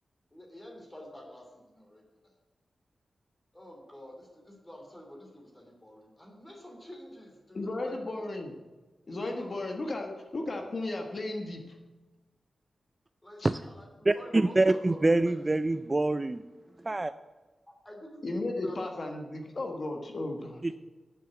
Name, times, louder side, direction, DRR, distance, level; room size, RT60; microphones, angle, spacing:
voice 1, 0.3-2.0 3.5-8.0 9.2-9.6 13.2-15.4 17.8-19.1, left 1 dB, 15° left, 0 dB, 2.9 m, -48 dB
voice 2, 7.5-8.5 9.1-11.6 13.4-13.5 18.2-20.6, left 2 dB, 40° left, 3 dB, 1.3 m, -34 dB
voice 3, 14.1-16.4 16.8-17.1 20.6-20.7, right 2 dB, 20° right, 11 dB, 0.3 m, -25 dB
9.1 x 7.5 x 9.1 m, 1.2 s
wide cardioid pair, 160°, 0 cm